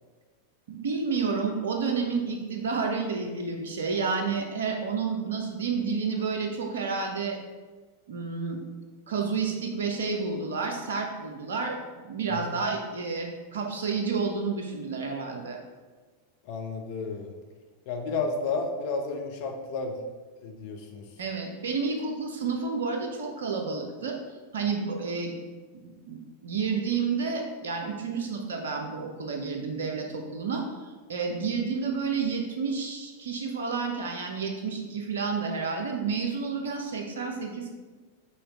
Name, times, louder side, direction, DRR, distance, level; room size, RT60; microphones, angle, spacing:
voice 1, 0.7-7.4 8.1-8.6 9.1-11.8 12.0-15.6 21.2-24.2 24.5-25.4 25.8-30.6 31.1-37.7, right 5 dB, 65° right, 2 dB, 0.7 m, -30 dB
voice 2, 16.4-17.3 17.9-20.0 20.4-21.1, left 4 dB, 50° left, 3 dB, 0.6 m, -32 dB
5.5 x 2.9 x 3.1 m, 1.3 s
figure-of-eight pair, 90°, 0 cm